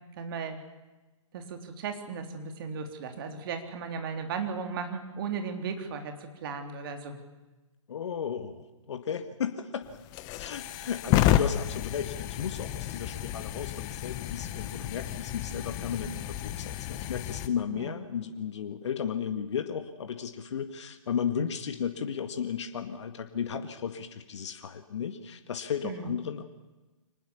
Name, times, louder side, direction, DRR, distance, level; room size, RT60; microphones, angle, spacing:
voice 1, 0.2-0.6 1.3-7.2 17.7-17.9 25.8-26.2, right 5 dB, 40° right, 6 dB, 3.5 m, -36 dB
voice 2, 7.9-9.9 10.4-26.4, left 7 dB, 55° left, 7 dB, 2.1 m, -34 dB
sound 1, 9.8-17.5, left 12 dB, 20° left, 1.1 m, -31 dB
25.5 x 19.5 x 7.2 m, 1.1 s
hypercardioid pair, 140°, 17 cm